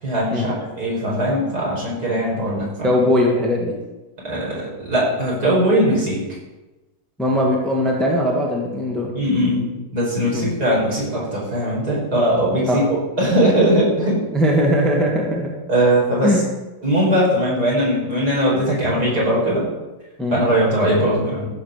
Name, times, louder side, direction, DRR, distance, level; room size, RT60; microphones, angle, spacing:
voice 1, 0.0-2.9 4.2-6.2 9.1-14.2 15.7-16.4 16.8-19.6 20.3-21.5, right 1 dB, 55° right, -6 dB, 5.5 m, -20 dB
voice 2, 2.8-3.8 7.2-9.1 10.3-10.5 12.7-12.8 14.3-15.5 16.2-16.4 20.2-20.4, equal, ahead, -2 dB, 1.7 m, -19 dB
15.0 x 5.2 x 6.6 m, 1.1 s
omnidirectional pair, 2.0 m